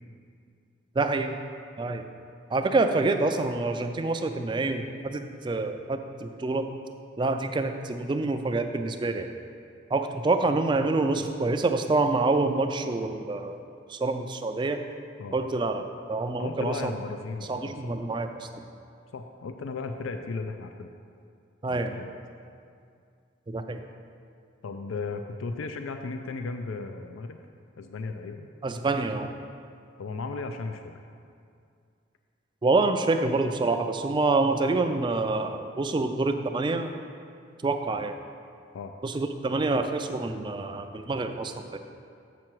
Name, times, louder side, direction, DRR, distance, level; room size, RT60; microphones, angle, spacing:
voice 1, 1.0-1.4 1.8-2.1 2.5-6.7 7.2-9.3 9.9-13.6 13.9-14.8 15.3-15.8 16.1-16.9 17.5-18.5 21.6-22.0 23.5-23.8 28.6-29.3 32.6-36.9 37.6-38.2 39.0-41.8, right 3 dB, 25° right, 7 dB, 0.3 m, -27 dB
voice 2, 16.4-17.9 19.1-20.9 21.7-22.1 24.6-27.4 27.8-28.5 30.0-30.9 38.7-38.9, left 4 dB, 90° left, 6 dB, 0.4 m, -35 dB
7.6 x 6.0 x 4.6 m, 2.4 s
head